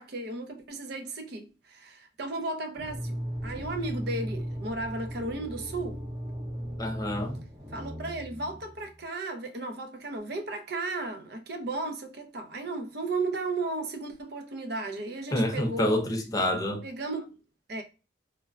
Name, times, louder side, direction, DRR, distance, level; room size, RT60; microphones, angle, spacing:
voice 1, 0.0-3.2 3.4-6.0 7.7-16.0 16.8-17.4 17.7-17.8, right 3 dB, 55° right, 0.6 m, -35 dB
sound 1, 2.7-8.8, equal, 20° right, 0.7 m, -37 dB
voice 2, 6.8-7.3 15.3-16.8, left 1 dB, 20° left, 0.5 m, -27 dB
3.2 x 2.2 x 2.2 m
head